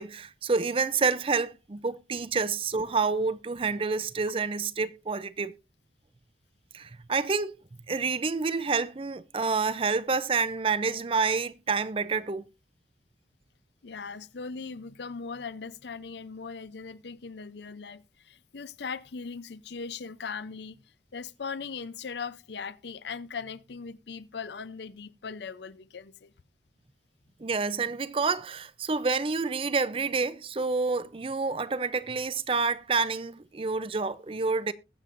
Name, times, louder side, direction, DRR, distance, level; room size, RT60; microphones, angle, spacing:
voice 1, 0.0-5.5 6.7-7.6 7.9-12.4 27.4-34.7, right 4 dB, 30° right, 0.5 m, -28 dB
voice 2, 13.8-20.8 21.1-26.3, left 5 dB, 70° left, 0.6 m, -39 dB
21.0 x 7.5 x 2.6 m
head